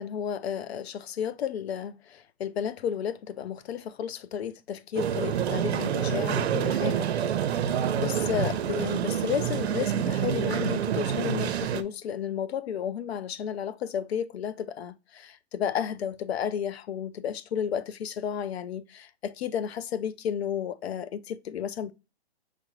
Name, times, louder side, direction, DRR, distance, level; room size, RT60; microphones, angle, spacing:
voice 1, 0.0-7.1 7.5-21.9, left 8 dB, 75° left, 0.5 m, -32 dB
sound 1, 5.0-11.8, right 9 dB, 80° right, 0.6 m, -27 dB
6.4 x 2.5 x 3.0 m
hypercardioid pair, 155°, 32 cm